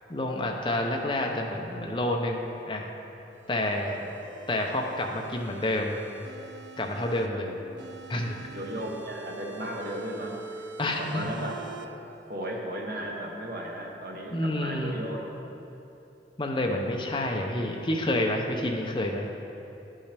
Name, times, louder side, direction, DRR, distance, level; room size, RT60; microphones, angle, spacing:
voice 1, 0.1-2.9 3.5-4.0 4.5-6.0 6.8-7.5 8.1-8.4 10.8-11.2 14.3-15.0 16.4-19.3, left 1 dB, 25° left, 1 dB, 0.6 m, -29 dB
sound 1, 3.3-7.3 7.8-11.9, right 5 dB, 80° right, 0.5 m, -45 dB
voice 2, 8.5-10.7 11.0-12.0 12.3-15.3, equal, 55° right, -1 dB, 1.0 m, -36 dB
10.5 x 5.6 x 3.4 m, 2.9 s
head